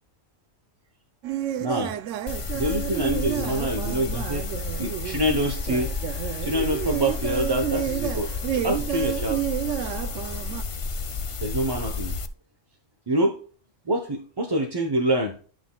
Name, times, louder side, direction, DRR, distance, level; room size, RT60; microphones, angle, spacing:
sound 1, 1.2-10.6, right 11 dB, 80° right, 0.9 m, -31 dB
voice 1, 1.6-2.0 2.5-4.5 4.8-5.9 6.4-9.4 9.8-9.9 11.4-12.2 13.1-13.4 13.8-15.4, right 1 dB, 25° right, 2 dB, 0.7 m, -26 dB
sound 2, 2.3-12.3, left 4 dB, 50° left, 0.4 m, -31 dB
11.5 x 6.2 x 2.2 m, 0.42 s
omnidirectional pair, 1.3 m